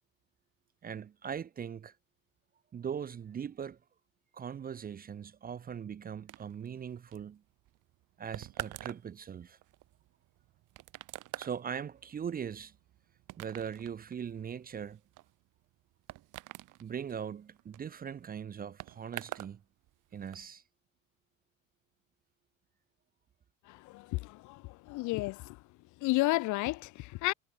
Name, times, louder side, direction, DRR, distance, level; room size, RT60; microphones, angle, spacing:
voice 1, 0.8-2.0 2.7-3.8 4.3-7.4 8.2-9.6 11.4-12.7 13.4-15.0 16.8-19.6 20.1-20.6, right 8 dB, 20° right, 0.8 m, -40 dB
sound 1, 6.3-19.6 19.8-20.5, right 16 dB, 50° right, 4.5 m, -47 dB
voice 2, 23.9-25.6 26.0-27.3, left 21 dB, 45° left, 1.0 m, -32 dB
figure-of-eight pair, 75°, 40 cm